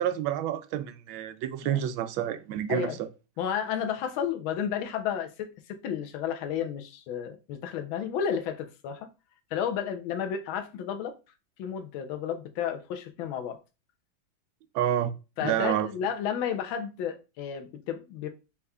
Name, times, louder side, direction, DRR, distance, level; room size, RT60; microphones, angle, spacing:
voice 1, 0.0-3.1 14.7-15.1 15.4-15.9, right 11 dB, 85° right, 1.3 m, -29 dB
voice 2, 3.4-9.1 9.5-11.1 11.6-13.6 15.4-18.3, left 8 dB, 90° left, 1.5 m, -32 dB
5.5 x 3.5 x 2.3 m
omnidirectional pair, 2.1 m